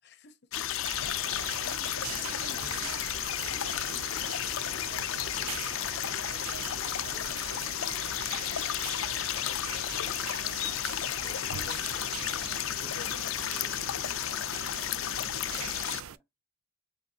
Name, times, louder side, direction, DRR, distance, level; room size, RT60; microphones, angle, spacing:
voice 1, 0.0-0.5 2.6-2.8 5.4-5.7 7.6-7.8 11.0-12.3 12.8-14.5, left 3 dB, 55° left, 0.8 m, -50 dB
sound 1, 0.5-16.0, left 12 dB, 70° left, 0.4 m, -33 dB
voice 2, 0.6-9.7 15.3-16.2, right 1 dB, 10° right, 1.7 m, -58 dB
sound 2, 0.8-16.2, right 9 dB, 85° right, 0.4 m, -42 dB
5.3 x 3.5 x 2.7 m
head